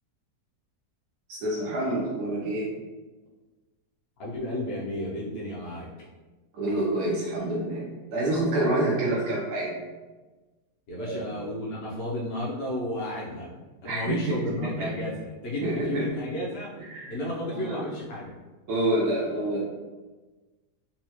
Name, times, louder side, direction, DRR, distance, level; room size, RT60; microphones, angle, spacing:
voice 1, 1.3-2.7 6.5-9.8 11.0-11.3 13.8-14.9 15.6-16.0 16.8-17.1 17.5-17.8 18.7-19.6, right 1 dB, 85° right, -6 dB, 1.3 m, -27 dB
voice 2, 4.2-5.9 10.9-13.5 13.8-18.3, left 1 dB, 60° left, -5 dB, 0.6 m, -33 dB
4.2 x 2.3 x 2.9 m, 1.2 s
omnidirectional pair, 1.7 m